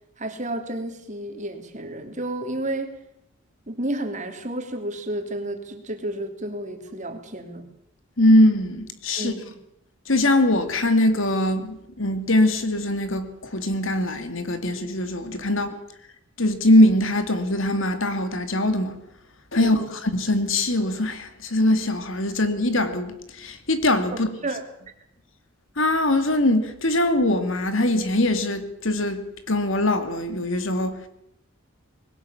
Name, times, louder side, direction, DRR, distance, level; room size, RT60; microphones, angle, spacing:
voice 1, 0.2-2.9 3.7-7.7 9.2-9.6 19.6-19.9 24.1-24.6, right 1 dB, 35° right, 2.9 m, -31 dB
voice 2, 8.2-9.3 10.1-15.7 16.4-19.0 19.5-24.3 25.8-31.1, left 1 dB, 65° left, 2.5 m, -22 dB
21.0 x 18.0 x 8.7 m
head